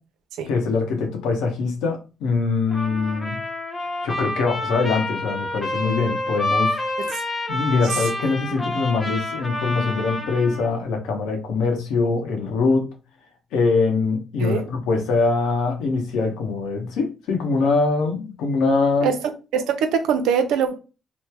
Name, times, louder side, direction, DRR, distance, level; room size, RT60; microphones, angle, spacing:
voice 1, 0.5-3.4 4.0-6.8 7.5-12.9 13.5-19.1, left 4 dB, 90° left, 0.9 m, -23 dB
Trumpet, 2.7-10.7, left 1 dB, 15° left, 0.9 m, -28 dB
voice 2, 14.4-14.7 19.0-19.2 19.5-20.8, right 7 dB, 85° right, 0.5 m, -22 dB
3.1 x 2.1 x 3.3 m
cardioid pair, 90°, 0 cm